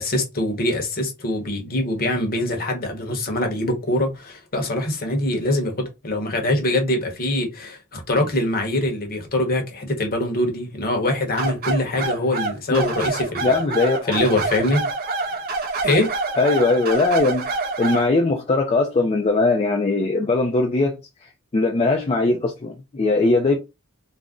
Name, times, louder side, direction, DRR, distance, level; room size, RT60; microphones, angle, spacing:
voice 1, 0.0-13.6 14.1-14.8 15.3-15.4 15.8-16.1, left 1 dB, 45° left, 0.9 m, -23 dB
sound 1, 11.4-18.1, right 3 dB, 45° right, 0.5 m, -26 dB
voice 2, 13.4-14.1 16.4-17.5 17.8-21.0 21.5-23.6, left 3 dB, 25° left, 0.4 m, -20 dB
2.5 x 2.1 x 3.5 m
head